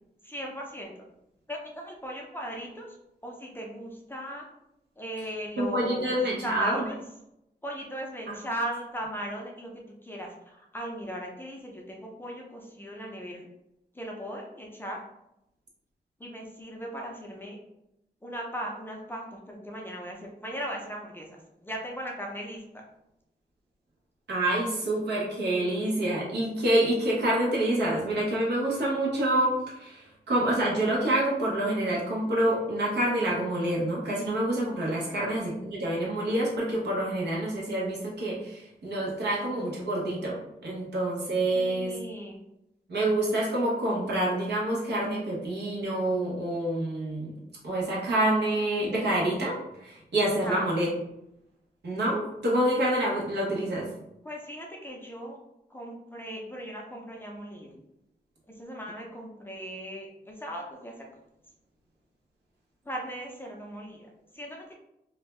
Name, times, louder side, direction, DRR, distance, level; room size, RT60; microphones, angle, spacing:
voice 1, 0.2-0.9 1.5-3.0 3.2-4.4 5.0-6.9 7.6-9.7 10.0-13.5 13.9-15.0 16.2-17.6 18.2-22.8 35.0-35.4 41.5-42.4 50.4-50.6 54.2-55.4 55.7-57.7 58.6-61.1 62.9-64.7, equal, 10° left, -1 dB, 0.5 m, -38 dB
voice 2, 5.6-6.9 8.3-8.4 24.3-42.0 42.9-50.9 51.8-53.9, right 1 dB, 75° right, -4 dB, 1.0 m, -27 dB
2.6 x 2.2 x 3.1 m, 0.85 s
wide cardioid pair, 125°, 17 cm